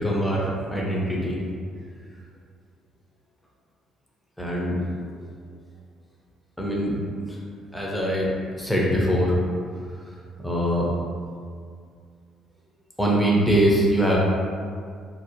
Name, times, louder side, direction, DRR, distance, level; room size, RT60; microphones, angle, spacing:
voice 1, 0.0-1.4 4.4-4.9 5.1-5.3 6.6-7.4 7.7-9.4 10.1-10.9 13.0-14.2, equal, 5° left, -4 dB, 0.5 m, -23 dB
2.6 x 2.0 x 2.7 m, 2.2 s
cardioid pair, 95°, 0 cm